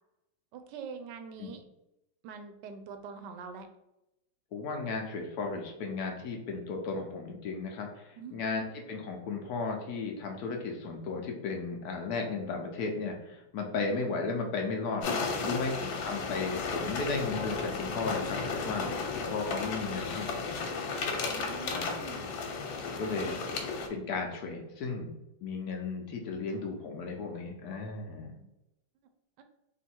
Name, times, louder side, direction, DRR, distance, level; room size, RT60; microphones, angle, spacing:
voice 1, 0.5-1.6 2.2-3.7 8.2-8.4 15.4-15.8 18.8-19.0 21.1-22.3 28.3-28.5 29.4-29.5, right 6 dB, 75° right, 7 dB, 1.1 m, -45 dB
voice 2, 4.5-15.1 15.4-20.6 21.7-22.0 22.8-23.3 23.9-25.1 25.4-28.3, left 4 dB, 65° left, 2 dB, 1.0 m, -35 dB
sound 1, 15.0-23.9, left 4 dB, 85° left, 1.5 m, -34 dB
3.8 x 2.6 x 4.3 m, 0.89 s
omnidirectional pair, 2.1 m